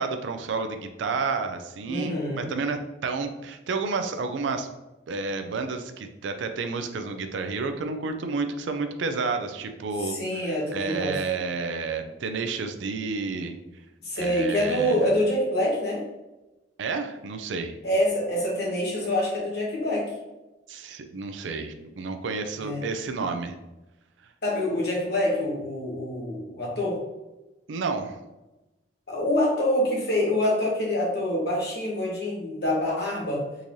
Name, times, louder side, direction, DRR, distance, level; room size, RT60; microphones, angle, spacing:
voice 1, 0.0-4.7 5.1-10.2 10.4-13.6 14.2-15.1 16.8-17.8 20.7-23.5 27.7-28.2, right 4 dB, 75° right, 7 dB, 0.4 m, -30 dB
voice 2, 1.9-2.5 10.0-11.2 14.0-16.0 17.8-20.1 22.6-22.8 24.4-27.0 29.1-33.4, left 1 dB, 60° left, -3 dB, 1.1 m, -26 dB
3.8 x 3.0 x 2.6 m, 1.0 s
head